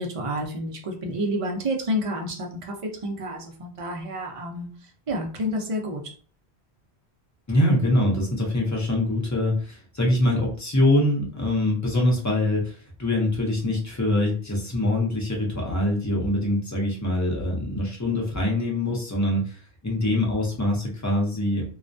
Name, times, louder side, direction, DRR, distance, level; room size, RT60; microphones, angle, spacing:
voice 1, 0.0-2.7 3.0-4.7 5.1-6.0, equal, 40° right, 1 dB, 0.5 m, -29 dB
voice 2, 7.5-21.6, left 1 dB, 20° left, -1 dB, 0.5 m, -24 dB
2.3 x 2.1 x 2.5 m, 0.42 s
omnidirectional pair, 1.1 m